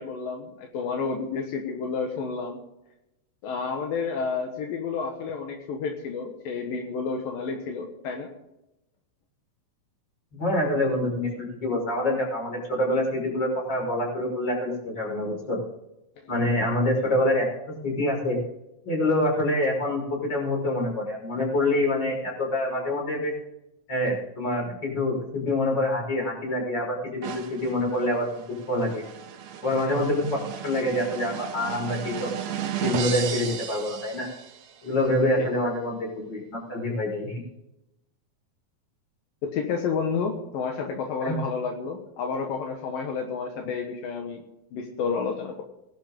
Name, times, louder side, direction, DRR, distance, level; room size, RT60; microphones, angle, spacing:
voice 1, 0.0-2.6 3.4-8.3 29.8-30.0 39.4-44.4 44.7-45.6, left 5 dB, 75° left, 2 dB, 3.1 m, -30 dB
voice 2, 10.3-15.6 16.3-18.4 18.8-23.3 23.9-29.0 29.6-32.3 32.8-34.3 34.8-37.4 41.2-41.3, left 1 dB, 30° left, -1 dB, 6.3 m, -26 dB
sound 1, 27.2-34.8, right 9 dB, 60° right, 2.2 m, -35 dB
20.0 x 11.5 x 3.8 m, 0.89 s
omnidirectional pair, 4.1 m